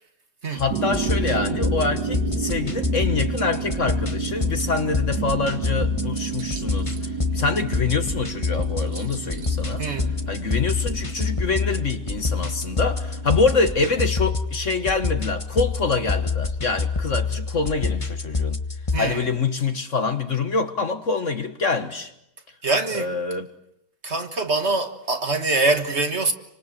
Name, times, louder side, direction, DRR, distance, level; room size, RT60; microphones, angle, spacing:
voice 1, 0.5-9.8 10.3-18.6 19.0-22.1 22.9-23.5, left 4 dB, 45° left, 1.7 m, -25 dB
sound 1, 0.6-19.0, left 4 dB, 20° left, 1.3 m, -27 dB
sound 2, 0.7-13.9, right 8 dB, 75° right, 2.0 m, -32 dB
voice 2, 9.8-10.2 18.9-19.3 22.6-23.1 24.0-26.3, right 3 dB, 40° right, 1.7 m, -24 dB
29.0 x 25.5 x 7.6 m
omnidirectional pair, 1.9 m